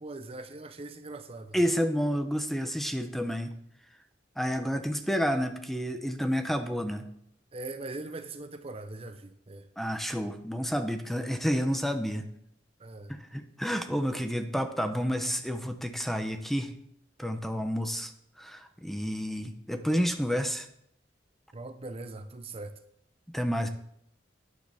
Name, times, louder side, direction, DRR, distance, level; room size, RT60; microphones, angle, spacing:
voice 1, 0.0-1.6 4.6-4.9 7.5-9.7 12.8-13.1 21.5-22.8, right 2 dB, 35° right, 9 dB, 0.7 m, -41 dB
voice 2, 1.5-3.5 4.4-7.1 9.8-12.3 13.1-16.7 17.2-18.1 18.4-20.7 23.3-23.7, equal, ahead, 7 dB, 0.7 m, -30 dB
11.5 x 9.7 x 3.5 m, 0.71 s
head